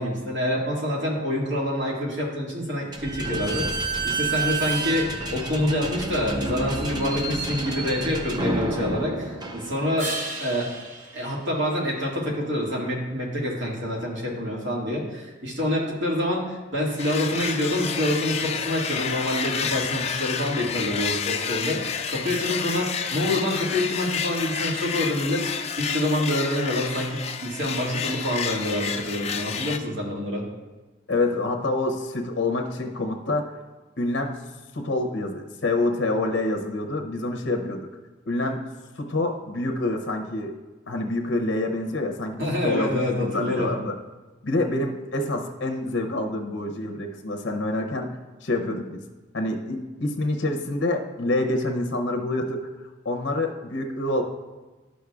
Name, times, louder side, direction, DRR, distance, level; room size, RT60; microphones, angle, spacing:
voice 1, 0.0-10.1 10.4-10.7 11.1-30.4 42.4-43.7, left 1 dB, 70° right, -3 dB, 1.8 m, -27 dB
Slam / Squeak, 2.9-10.2, right 3 dB, 20° right, 0.6 m, -29 dB
sound 1, 10.0-12.5 18.3-22.3, right 2 dB, 40° right, 0.9 m, -40 dB
sound 2, 17.0-29.8, left 7 dB, 30° left, 0.3 m, -30 dB
voice 2, 31.1-33.5 34.0-34.4 34.7-37.8 38.3-38.6 39.0-40.5 40.9-43.9 44.4-49.0 49.3-52.7 53.0-54.2, left 2 dB, 65° left, 4 dB, 0.7 m, -27 dB
11.5 x 6.3 x 2.4 m, 1.2 s
head